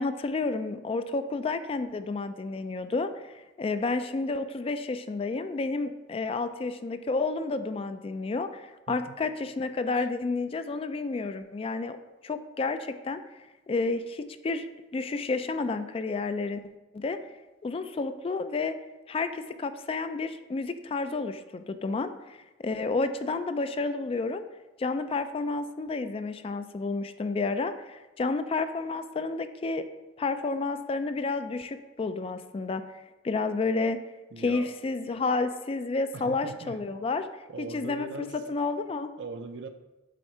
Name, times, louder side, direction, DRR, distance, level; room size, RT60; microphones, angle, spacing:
voice 1, 0.0-13.2 13.7-14.7 14.9-16.6 16.9-17.2 17.6-18.8 19.1-22.4 22.6-24.5 24.8-29.9 30.2-32.8 33.2-34.0 34.4-37.3 37.6-39.1, left 3 dB, 30° left, 10 dB, 0.3 m, -30 dB
voice 2, 34.3-34.7 36.1-36.8 37.5-38.4 39.2-39.7, right 3 dB, 70° right, 8 dB, 0.5 m, -40 dB
7.7 x 3.6 x 4.3 m, 1.1 s
head